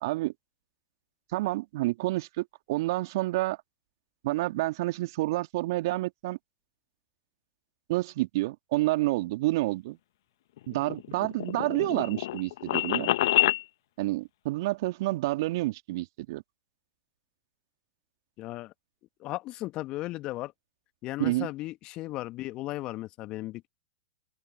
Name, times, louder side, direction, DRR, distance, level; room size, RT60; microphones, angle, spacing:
voice 1, 0.0-0.3 1.3-3.6 4.2-6.4 7.9-10.0 10.7-13.1 14.0-16.4 21.2-21.5, right 19 dB, 55° right, 2.3 m, -29 dB
sound 1, 10.6-13.6, left 15 dB, 60° left, 1.3 m, -27 dB
voice 2, 18.4-18.7 19.2-20.5 21.0-23.7, left 17 dB, 40° left, 2.0 m, -36 dB
open air
hypercardioid pair, 105°, 2 cm